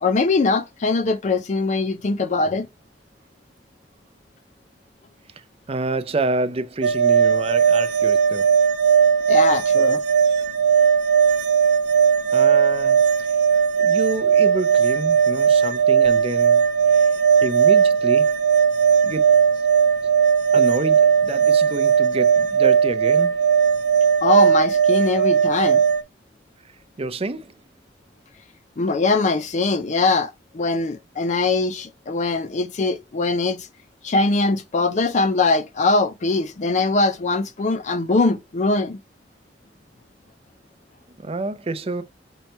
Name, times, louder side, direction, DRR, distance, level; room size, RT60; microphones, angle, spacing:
voice 1, 0.0-2.7 9.3-10.0 24.2-25.8 28.8-33.7 34.0-39.0, left 3 dB, 40° left, 0.4 m, -21 dB
voice 2, 5.7-8.5 12.3-13.4 13.8-16.6 16.9-17.1 17.4-18.3 19.0-19.4 20.5-23.4 27.0-27.6 41.2-42.0, right 2 dB, 35° right, 0.5 m, -28 dB
sound 1, 6.8-26.0, right 7 dB, 70° right, 0.6 m, -17 dB
5.4 x 3.0 x 3.3 m
head